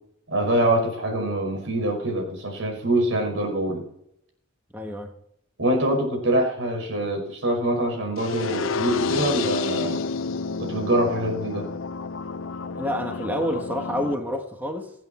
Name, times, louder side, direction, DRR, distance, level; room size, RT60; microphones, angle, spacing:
voice 1, 0.3-3.8 5.6-10.0 10.6-11.7, right 1 dB, 75° right, 5.4 m, -24 dB
voice 2, 4.7-5.1 12.7-14.9, equal, 10° right, 1.3 m, -28 dB
sound 1, 8.2-14.1, left 4 dB, 80° left, 0.6 m, -29 dB
24.5 x 8.5 x 4.3 m
head